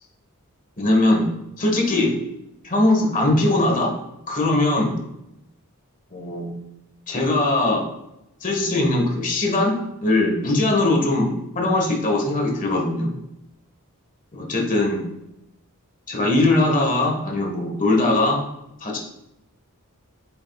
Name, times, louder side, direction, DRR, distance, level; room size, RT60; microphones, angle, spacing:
voice 1, 0.8-1.3 1.6-2.1 2.6-3.9 4.3-4.9 6.1-6.5 7.1-7.8 8.4-9.7 10.0-13.1 14.3-15.0 16.1-18.4 18.8-19.0, left 2 dB, 35° left, 0 dB, 1.6 m, -20 dB
8.8 x 7.5 x 2.4 m, 0.89 s
head